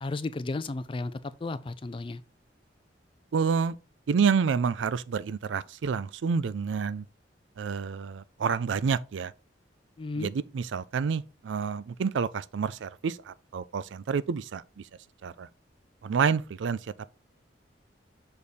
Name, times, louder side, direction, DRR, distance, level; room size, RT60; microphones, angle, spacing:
voice 1, 0.0-2.2 10.0-10.3, left 3 dB, 30° left, 0.4 m, -34 dB
voice 2, 3.3-3.8 4.1-7.0 7.6-9.3 10.2-14.6 15.2-15.5 16.0-16.8, right 6 dB, 85° right, 0.4 m, -28 dB
6.6 x 3.5 x 4.1 m
head